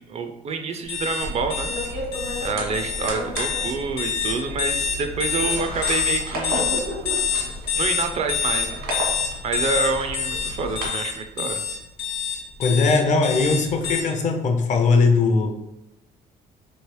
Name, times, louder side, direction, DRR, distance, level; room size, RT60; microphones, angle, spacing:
voice 1, 0.0-1.7 2.4-6.7 7.8-8.8 9.4-11.6, right 4 dB, 40° right, 6 dB, 0.4 m, -27 dB
sound 1, 0.9-14.0, left 7 dB, 75° left, 0.9 m, -26 dB
sound 2, 1.2-10.9, equal, 80° right, 1.4 m, -32 dB
voice 2, 12.6-15.6, left 4 dB, 45° left, 5 dB, 0.5 m, -19 dB
3.1 x 2.9 x 3.1 m, 0.91 s
cardioid pair, 110°, 17 cm